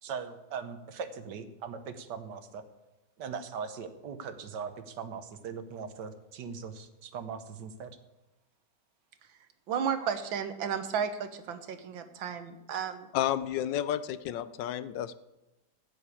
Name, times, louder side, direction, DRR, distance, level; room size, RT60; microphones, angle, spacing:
voice 1, 0.0-2.6 3.2-8.0, right 6 dB, 65° right, 10 dB, 1.6 m, -40 dB
voice 2, 9.7-13.1, right 7 dB, 85° right, 9 dB, 1.8 m, -33 dB
voice 3, 13.1-15.2, left 11 dB, 75° left, 15 dB, 1.2 m, -31 dB
15.5 x 6.4 x 8.4 m, 1.0 s
omnidirectional pair, 2.1 m